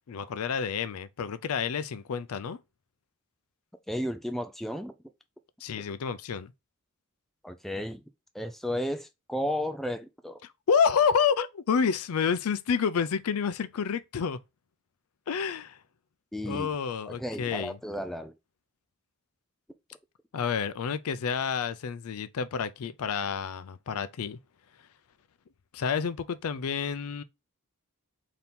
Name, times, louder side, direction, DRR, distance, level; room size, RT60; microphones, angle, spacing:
voice 1, 0.1-2.6 5.6-6.5 10.7-14.4 15.3-15.8 16.4-17.8 20.3-24.4 25.7-27.2, left 6 dB, 70° left, 0.4 m, -29 dB
voice 2, 3.9-4.9 7.4-8.0 8.3-10.4 16.3-16.7 17.1-18.3, equal, ahead, 0.3 m, -33 dB
4.1 x 2.8 x 3.5 m
head